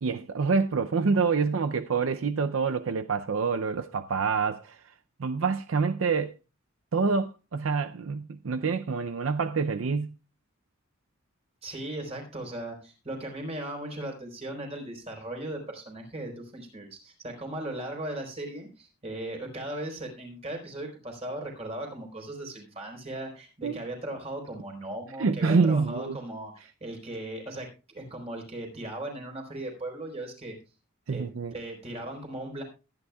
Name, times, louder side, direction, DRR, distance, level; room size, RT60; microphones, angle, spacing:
voice 1, 0.0-4.8 5.2-6.3 6.9-10.1 23.6-23.8 25.2-26.2 31.1-31.5, right 4 dB, 75° right, 0.5 m, -26 dB
voice 2, 11.6-30.6 31.1-32.6, right 1 dB, 30° right, 4.2 m, -38 dB
21.5 x 9.8 x 2.3 m
head